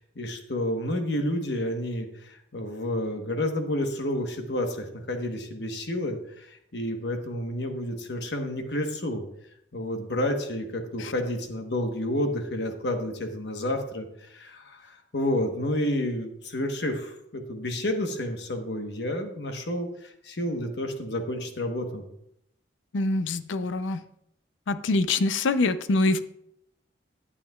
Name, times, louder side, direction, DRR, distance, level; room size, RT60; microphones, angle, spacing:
voice 1, 0.0-9.2 9.7-22.1, left 1 dB, 65° left, 5 dB, 1.1 m, -30 dB
voice 2, 22.9-24.0 24.7-26.2, left 2 dB, 90° left, 12 dB, 0.5 m, -25 dB
12.0 x 8.4 x 2.3 m, 0.77 s
head